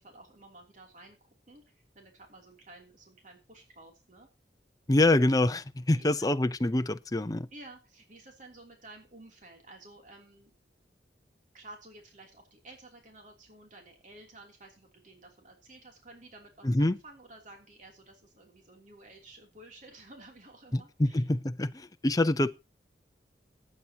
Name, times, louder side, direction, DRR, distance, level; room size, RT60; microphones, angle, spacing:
voice 1, 0.0-4.3 5.9-6.3 7.5-10.5 11.5-21.3, right 2 dB, 45° right, 3.0 m, -52 dB
voice 2, 4.9-7.5 16.6-17.0 20.7-22.5, left 1 dB, 20° left, 0.6 m, -26 dB
19.0 x 8.8 x 2.9 m
head